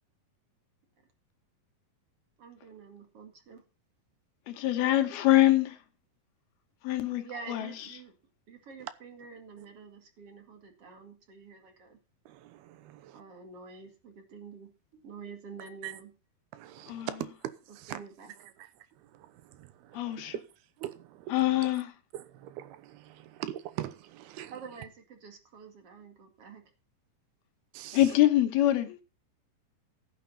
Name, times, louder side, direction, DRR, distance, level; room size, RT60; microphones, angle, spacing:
voice 1, 2.4-3.6 7.1-8.1 8.5-12.0 13.1-14.7 15.0-16.1 17.9-18.3 24.5-26.6, right 5 dB, 45° right, 2.7 m, -47 dB
voice 2, 4.5-5.8 6.8-7.2 7.5-7.7 16.9-17.1 19.9-20.3 21.3-21.9 27.9-29.0, left 14 dB, 80° left, 3.2 m, -24 dB
voice 3, 12.3-13.2 15.8-16.0 16.5-18.0 19.0-20.4 20.8-21.5 22.1-24.5 27.7-28.0, right 13 dB, 85° right, 3.0 m, -42 dB
13.0 x 10.0 x 4.2 m
omnidirectional pair, 4.4 m